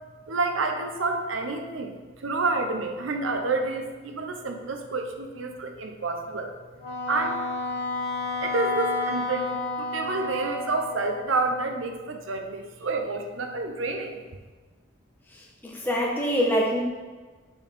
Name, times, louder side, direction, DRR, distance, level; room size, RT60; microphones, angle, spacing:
voice 1, 0.3-6.5 7.1-7.4 8.4-14.2, right 3 dB, 85° right, 5 dB, 0.7 m, -29 dB
Wind instrument woodwind instrument, 6.8-11.3, left 3 dB, 55° left, 1.1 m, -31 dB
voice 2, 15.6-16.8, equal, 10° left, -3 dB, 1.0 m, -24 dB
8.2 x 4.7 x 3.5 m, 1.4 s
head